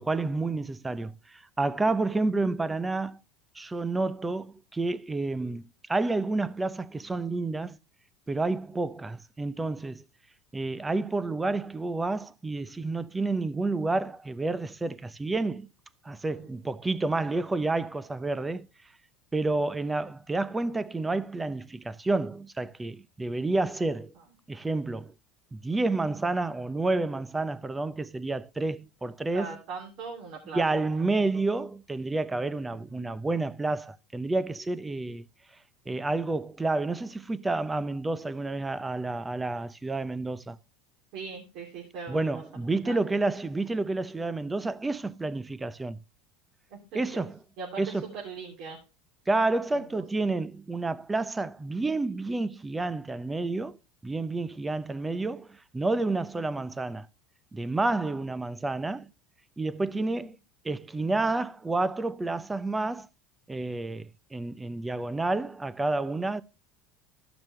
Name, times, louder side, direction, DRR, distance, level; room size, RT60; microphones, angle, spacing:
voice 1, 0.0-3.2 3.5-5.6 5.9-7.8 8.3-10.0 10.5-15.7 16.0-18.7 19.3-24.1 24.5-25.1 25.5-29.6 30.5-35.2 35.9-40.6 42.1-46.0 46.9-47.4 47.8-48.0 49.3-53.8 54.0-57.1 57.5-59.1 59.6-60.4 60.6-63.1 63.5-66.4, right 2 dB, 15° right, 0.6 m, -29 dB
voice 2, 16.2-16.6 19.7-19.9 24.1-24.2 29.3-30.6 30.9-31.0 31.3-31.4 32.7-33.1 41.1-43.0 46.7-47.2 47.6-48.8 49.7-50.0 59.9-60.3, right 5 dB, 65° right, 3.0 m, -41 dB
14.0 x 6.1 x 3.1 m
supercardioid pair, 105°, 0 cm